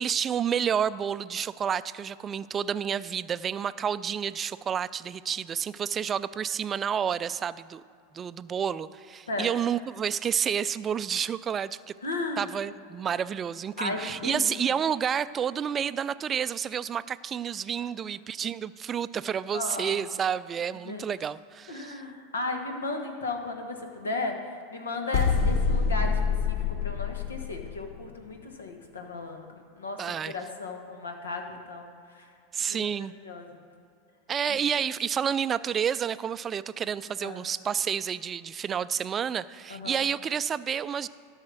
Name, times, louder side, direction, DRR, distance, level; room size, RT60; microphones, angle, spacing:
voice 1, 0.0-7.8 8.1-11.8 12.4-22.0 30.0-30.3 32.5-33.1 34.3-41.1, right 8 dB, 30° right, 16 dB, 0.3 m, -30 dB
voice 2, 12.0-12.4 13.8-14.5 19.5-20.0 20.8-21.1 21.7-24.3 24.7-26.2 26.5-31.9 32.1-32.3 32.7-32.8 33.2-33.6 34.5-34.6 37.0-37.4 39.7-40.0, left 2 dB, 85° left, 4 dB, 1.3 m, -35 dB
sound 1, 25.1-27.9, left 5 dB, 55° left, 0.7 m, -26 dB
12.5 x 5.6 x 6.2 m, 2.4 s
hypercardioid pair, 90°, 0 cm